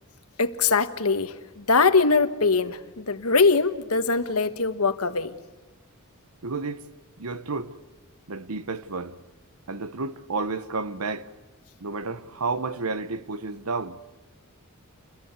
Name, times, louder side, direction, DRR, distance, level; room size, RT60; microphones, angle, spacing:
voice 1, 0.4-5.3, left 4 dB, 85° left, 1.4 m, -22 dB
voice 2, 6.4-6.8 7.2-7.7 8.3-9.2 9.7-11.3 11.8-14.0, right 3 dB, 85° right, 1.1 m, -31 dB
29.0 x 21.5 x 8.2 m
head